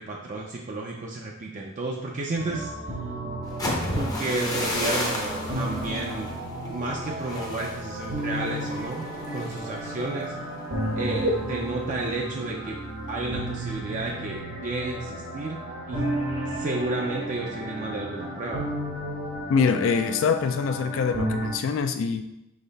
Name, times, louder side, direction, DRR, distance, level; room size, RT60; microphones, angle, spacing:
voice 1, 0.0-2.7 3.9-6.3 6.6-9.0 9.3-10.3 10.9-12.8 13.1-16.1 16.5-18.8, right 2 dB, 35° right, -1 dB, 0.4 m, -31 dB
sound 1, 2.4-21.5, right 1 dB, 70° right, 1.2 m, -33 dB
sound 2, 3.4-11.3 11.7-12.0 12.3-12.7, left 1 dB, 20° left, 0.6 m, -33 dB
voice 2, 19.5-22.2, left 6 dB, 70° left, 8 dB, 0.3 m, -24 dB
4.0 x 3.1 x 3.9 m, 0.87 s
head